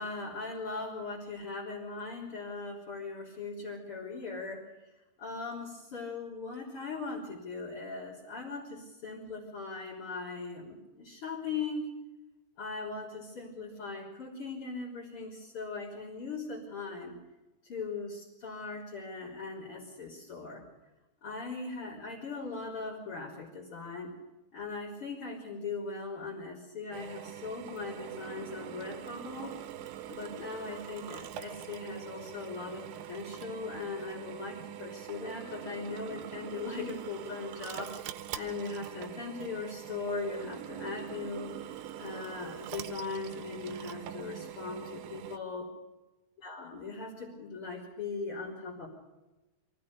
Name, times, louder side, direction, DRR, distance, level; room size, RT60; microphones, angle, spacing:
voice 1, 0.0-4.7 5.2-11.9 12.6-17.1 17.6-20.6 21.2-24.1 24.5-29.6 30.1-41.5 42.0-45.7 46.4-48.9, left 4 dB, 35° left, -5 dB, 4.3 m, -39 dB
Drill, 26.9-45.4, right 11 dB, 75° right, 2.5 m, -43 dB
24.0 x 16.5 x 6.8 m, 1.1 s
omnidirectional pair, 4.3 m